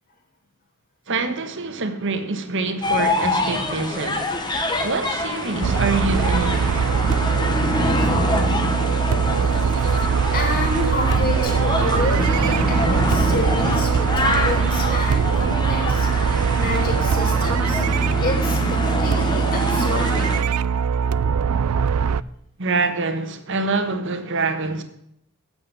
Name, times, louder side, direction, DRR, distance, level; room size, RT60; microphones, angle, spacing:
voice 1, 1.1-4.3 4.8-6.7 22.6-24.8, right 3 dB, 60° right, 1.3 m, -25 dB
sound 1, 2.8-20.4, left 1 dB, 20° left, 1.3 m, -25 dB
sound 2, 5.6-22.2, right 6 dB, 90° right, 0.4 m, -21 dB
voice 2, 10.3-17.8 18.2-20.5, left 2 dB, 40° left, 3.0 m, -29 dB
8.9 x 7.9 x 8.8 m
head